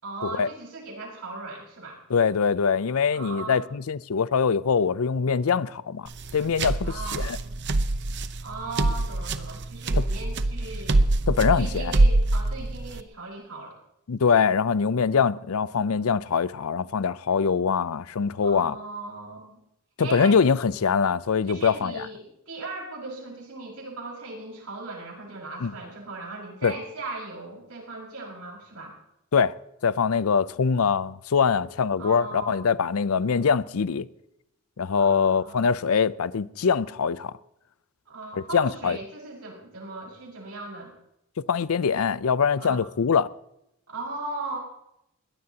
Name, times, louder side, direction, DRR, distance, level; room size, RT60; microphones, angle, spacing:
voice 1, 0.0-2.0 3.1-3.6 6.8-7.3 8.4-11.0 11.5-13.8 18.4-19.6 20.0-20.4 21.5-28.9 32.0-32.6 35.0-35.7 38.1-40.9 42.6-42.8 43.9-44.6, right 2 dB, 85° right, 5.4 m, -38 dB
voice 2, 2.1-7.4 9.9-10.0 11.3-11.9 14.1-18.7 20.0-22.1 25.6-25.7 26.6-26.7 29.3-29.5 29.8-34.1 34.8-37.3 38.3-39.0 41.5-43.3, left 6 dB, 75° left, 0.5 m, -23 dB
sound 1, 6.1-13.0, right 2 dB, 55° right, 0.8 m, -24 dB
21.5 x 17.0 x 2.9 m
head